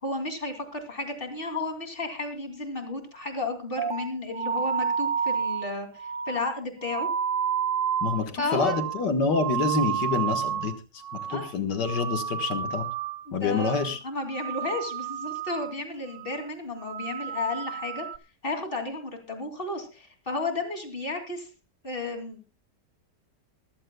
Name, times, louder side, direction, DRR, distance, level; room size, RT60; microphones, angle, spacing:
voice 1, 0.0-7.1 8.4-8.7 11.3-11.5 13.3-13.8 14.0-18.1 18.4-21.5 21.8-22.4, left 3 dB, 30° left, 5 dB, 3.0 m, -33 dB
sound 1, 3.8-10.8 11.0-11.5 11.8-13.3 13.5-14.0 14.3-15.8 16.1-16.5 16.8-18.2, right 8 dB, 55° right, 1.0 m, -30 dB
voice 2, 8.0-10.7 11.1-12.9 13.3-14.0, left 4 dB, 90° left, 7 dB, 2.1 m, -27 dB
21.5 x 14.5 x 2.3 m, 0.29 s
omnidirectional pair, 1.8 m